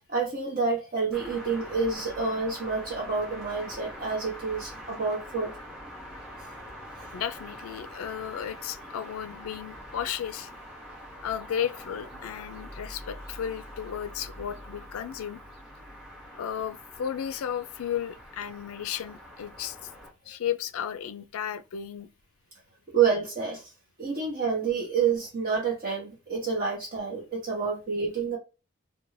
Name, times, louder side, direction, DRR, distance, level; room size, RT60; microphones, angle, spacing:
voice 1, 0.1-5.5 22.9-23.7 24.0-28.4, right 5 dB, 40° right, 0.8 m, -28 dB
sound 1, 1.1-20.1, equal, 5° right, 0.7 m, -44 dB
voice 2, 7.1-10.5 11.2-15.4 16.4-19.9 20.3-22.1, left 9 dB, 85° left, 0.3 m, -34 dB
2.5 x 2.2 x 3.1 m
head